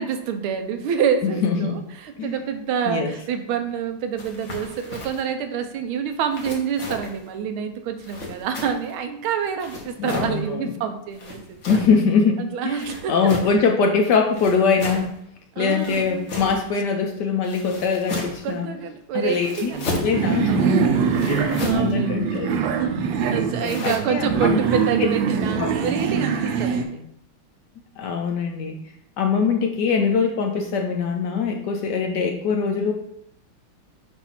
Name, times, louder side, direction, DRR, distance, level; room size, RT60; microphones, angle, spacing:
voice 1, 0.0-11.6 12.4-13.3 15.6-16.3 18.4-20.8 21.3-22.4 22.7-27.1, right 7 dB, 90° right, 7 dB, 1.5 m, -27 dB
voice 2, 1.2-1.7 2.2-2.4 2.9-3.1 10.0-10.7 11.7-12.8 13.1-15.2 15.6-18.7 19.1-20.7 21.3-22.6 23.3-24.6 25.6-25.7 28.0-28.8 29.2-32.9, left 5 dB, 70° left, 3 dB, 1.1 m, -22 dB
sound 1, 4.2-5.3 6.3-7.2 8.0-8.9 9.6-10.4 11.1-12.0 12.8-13.6 14.3-15.1 15.8-16.7 17.4-18.5 19.3-20.2 21.1-21.9 23.6-24.0, left 2 dB, 45° left, 1.2 m, -33 dB
sound 2, 19.7-26.8, right 6 dB, 70° right, 1.3 m, -23 dB
7.0 x 2.6 x 5.7 m, 0.75 s
omnidirectional pair, 2.3 m